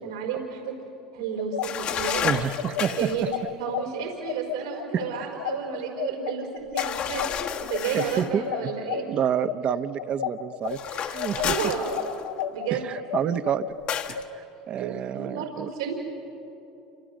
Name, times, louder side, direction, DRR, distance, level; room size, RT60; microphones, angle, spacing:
voice 1, 0.0-0.7 1.1-2.3 3.0-3.2 3.6-7.2 7.6-9.0 10.9-11.9 12.5-12.9 14.8-15.9, right 7 dB, 85° right, 1 dB, 4.5 m, -32 dB
sound 1, 1.4-10.8 11.1-14.2, left 10 dB, 75° left, 1.2 m, -32 dB
sound 2, 1.6-3.2 6.8-8.3 10.7-12.4 13.9-14.2, left 8 dB, 50° left, 1.5 m, -31 dB
voice 2, 2.2-3.3 4.9-5.3 5.7-5.8 7.9-8.7 9.1-10.8 11.1-11.7 12.7-13.7 14.1-15.7, right 9 dB, 45° right, 11 dB, 1.0 m, -29 dB
29.0 x 25.5 x 6.5 m, 3.0 s
hypercardioid pair, 90°, 3 cm